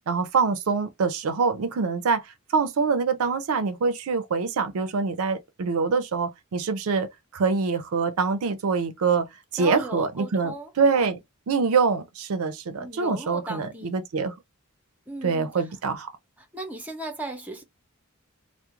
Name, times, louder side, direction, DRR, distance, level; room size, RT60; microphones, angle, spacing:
voice 1, 0.1-7.1 7.3-9.3 9.5-11.2 11.5-14.3 15.2-16.1, right 5 dB, 75° right, 0.4 m, -25 dB
voice 2, 9.5-10.7 11.0-11.1 12.8-13.9 15.1-15.7 16.4-17.6, right 2 dB, 5° right, 0.6 m, -36 dB
2.3 x 2.0 x 2.9 m
head